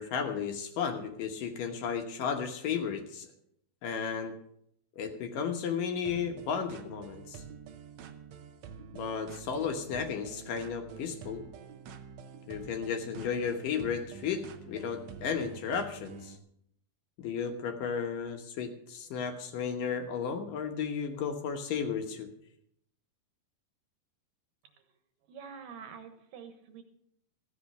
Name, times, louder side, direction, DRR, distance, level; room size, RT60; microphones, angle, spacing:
voice 1, 0.0-3.3 3.8-4.3 5.0-7.4 8.9-11.4 12.5-16.4 17.2-22.3, left 6 dB, 70° left, 4 dB, 2.5 m, -34 dB
sound 1, 6.0-16.4, right 6 dB, 85° right, 1.5 m, -47 dB
voice 2, 25.3-26.8, right 6 dB, 70° right, 7 dB, 2.7 m, -46 dB
14.5 x 8.4 x 6.6 m, 0.72 s
omnidirectional pair, 4.5 m